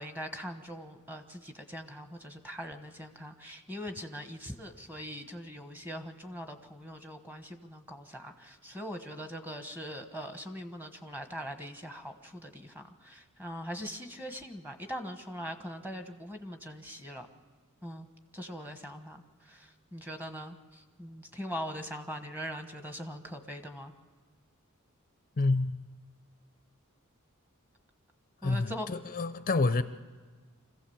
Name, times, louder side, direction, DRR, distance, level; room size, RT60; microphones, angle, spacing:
voice 1, 0.0-17.3 17.8-18.1 18.3-23.9 28.4-28.9, equal, 10° right, 1.4 m, -41 dB
voice 2, 25.4-25.9 28.4-29.8, left 3 dB, 40° left, 0.6 m, -28 dB
25.5 x 15.5 x 7.2 m
head